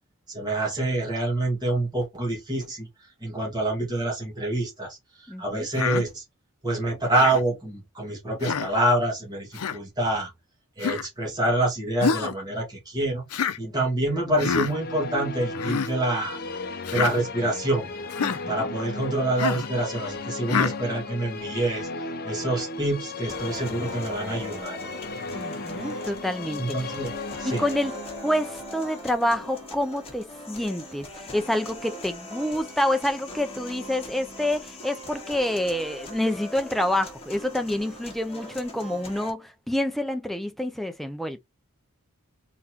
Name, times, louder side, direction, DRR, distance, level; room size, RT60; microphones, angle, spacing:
voice 1, 0.3-2.9 3.2-6.2 6.6-10.3 10.8-13.3 13.6-16.4 16.9-17.9 18.5-21.9 22.2-24.8 26.6-27.1 27.4-27.6, right 1 dB, 20° right, 2.0 m, -26 dB
voice 2, 5.3-5.7 18.2-18.7 25.3-26.6 27.4-28.0 28.2-41.4, left 1 dB, ahead, 0.5 m, -27 dB
Human voice, 5.7-6.0 7.1-7.4 8.4-8.7 9.5-9.8 10.8-11.1 12.0-12.4 13.3-13.6 14.4-14.7 15.5-15.9 16.9-17.1 18.1-18.4 19.4-19.7 20.5-20.8, left 6 dB, 90° left, 0.5 m, -26 dB
sound 1, 14.3-30.4, left 3 dB, 45° left, 0.6 m, -36 dB
sound 2, 23.3-39.3, equal, 25° left, 1.7 m, -41 dB
4.0 x 4.0 x 2.9 m
head